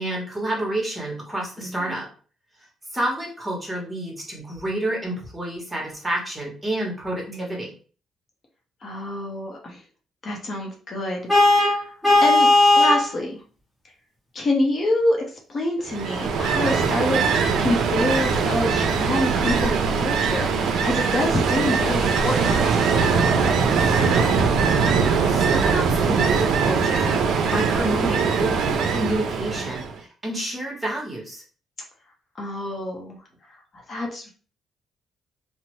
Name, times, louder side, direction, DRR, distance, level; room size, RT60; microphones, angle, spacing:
voice 1, 0.0-2.1 2.9-7.7 25.3-27.1 27.5-31.4, right 1 dB, 15° right, -1 dB, 1.1 m, -29 dB
voice 2, 1.6-2.0 7.3-7.6 8.8-9.8 10.2-11.9 12.2-13.4 14.3-15.2 15.5-17.2 17.6-22.8 28.0-28.2 32.4-33.2 33.5-34.3, left 1 dB, 45° left, 1 dB, 0.7 m, -27 dB
Vehicle horn car horn honking, 11.3-13.1, left 2 dB, 10° left, 1.1 m, -16 dB
Ocean, 15.9-30.0, right 5 dB, 75° right, 0.4 m, -21 dB
2.6 x 2.1 x 3.0 m, 0.39 s
cardioid pair, 90°, 0 cm